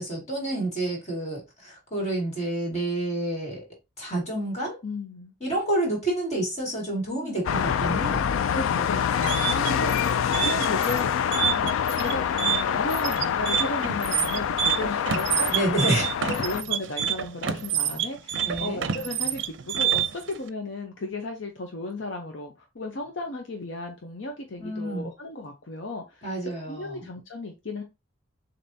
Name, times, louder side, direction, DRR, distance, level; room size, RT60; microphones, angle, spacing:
voice 1, 0.0-3.6 4.0-4.8 5.4-8.3 15.5-16.1 18.4-18.8 24.6-25.1 26.2-27.0, right 1 dB, 35° left, 2.3 m, -29 dB
voice 2, 4.8-5.3 7.2-7.4 8.5-10.2 10.4-11.1 11.6-15.5 16.2-26.3 26.7-27.8, left 2 dB, 70° left, 0.8 m, -34 dB
sound 1, 7.4-16.6, left 8 dB, 90° left, 0.3 m, -26 dB
sound 2, 9.0-20.3, right 9 dB, 65° right, 0.5 m, -27 dB
6.8 x 2.8 x 2.7 m
head